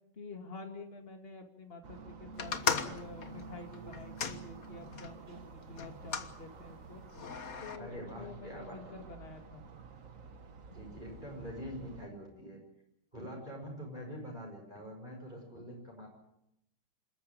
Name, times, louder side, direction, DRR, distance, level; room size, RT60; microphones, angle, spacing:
voice 1, 0.1-7.0 7.6-9.6, left 3 dB, 35° left, 4 dB, 2.5 m, -48 dB
sound 1, 1.8-12.1, right 4 dB, 50° right, 1.7 m, -50 dB
sound 2, 2.4-5.1 5.8-6.3 7.1-7.8, left 6 dB, 55° left, 1.7 m, -36 dB
voice 2, 7.8-9.0 10.7-12.6 13.1-16.1, equal, 25° right, -1 dB, 6.0 m, -45 dB
27.0 x 14.0 x 8.9 m, 0.82 s
omnidirectional pair, 1.9 m